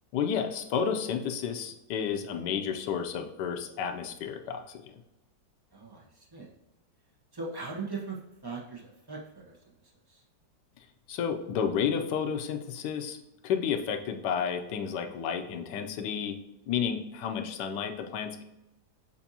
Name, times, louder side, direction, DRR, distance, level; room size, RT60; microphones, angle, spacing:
voice 1, 0.1-4.8 11.1-13.2 13.4-16.4 16.7-18.4, left 7 dB, 90° left, 5 dB, 1.2 m, -31 dB
voice 2, 5.7-6.5 7.3-9.6 10.1-10.2, right 4 dB, 20° right, -3 dB, 0.6 m, -39 dB
6.8 x 2.5 x 2.7 m, 0.93 s
omnidirectional pair, 1.8 m